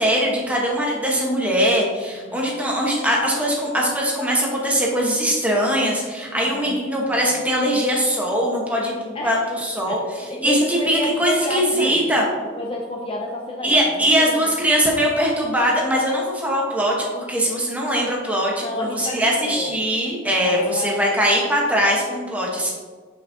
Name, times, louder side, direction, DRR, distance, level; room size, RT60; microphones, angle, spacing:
voice 1, 0.0-12.2 13.6-22.7, equal, 10° right, -3 dB, 1.2 m, -21 dB
voice 2, 2.1-2.4 6.3-6.8 7.1-7.2 9.1-9.5 9.9-12.1 12.5-14.5 14.8-15.0 18.5-19.7 20.4-21.0, left 2 dB, 30° left, 0 dB, 0.5 m, -30 dB
6.6 x 5.7 x 2.8 m, 1.5 s
head